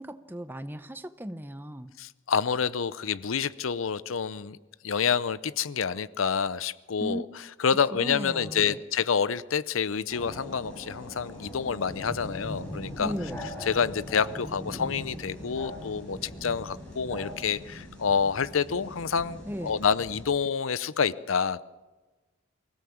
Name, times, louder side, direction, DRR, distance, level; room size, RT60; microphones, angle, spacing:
voice 1, 0.0-1.9 7.0-7.2 7.9-8.8 13.0-13.4 19.5-19.8, equal, 10° right, 11 dB, 0.7 m, -36 dB
voice 2, 2.0-4.6 4.8-7.2 7.6-13.1 13.7-21.6, left 6 dB, 85° left, 17 dB, 0.6 m, -28 dB
sound 1, 10.1-20.2, equal, 5° left, 7.2 m, -41 dB
24.0 x 17.0 x 7.2 m, 1.2 s
head